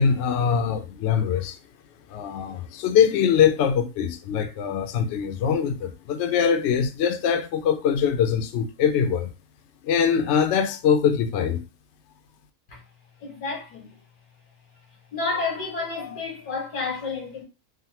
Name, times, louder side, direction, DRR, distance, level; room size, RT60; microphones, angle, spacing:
voice 1, 0.0-1.6 2.1-9.3 9.8-11.6, left 7 dB, 70° left, 0.7 m, -22 dB
voice 2, 13.2-13.9 15.1-17.4, left 4 dB, 90° left, 1.7 m, -30 dB
3.6 x 2.1 x 2.8 m
omnidirectional pair, 1.6 m